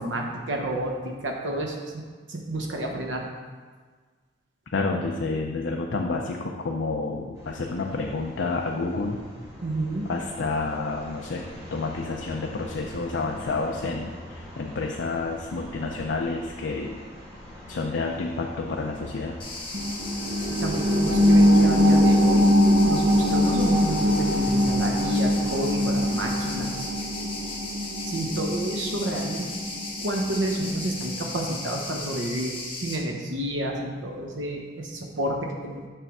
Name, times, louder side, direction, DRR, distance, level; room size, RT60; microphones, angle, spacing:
voice 1, 0.0-2.0 2.3-3.3 9.6-10.1 20.4-22.5 22.9-26.9 28.0-29.6 30.0-35.9, right 1 dB, 80° right, 1 dB, 1.0 m, -30 dB
voice 2, 4.7-9.2 10.1-11.4 11.7-17.0 17.7-19.4, left 3 dB, 75° left, 1 dB, 0.5 m, -29 dB
sound 1, 7.3-26.7, equal, 15° right, 1.3 m, -44 dB
sound 2, 19.4-33.0, left 3 dB, 30° left, 0.9 m, -36 dB
sound 3, 19.7-30.8 31.2-31.3, equal, 50° right, 0.8 m, -22 dB
6.6 x 3.3 x 6.1 m, 1.5 s
head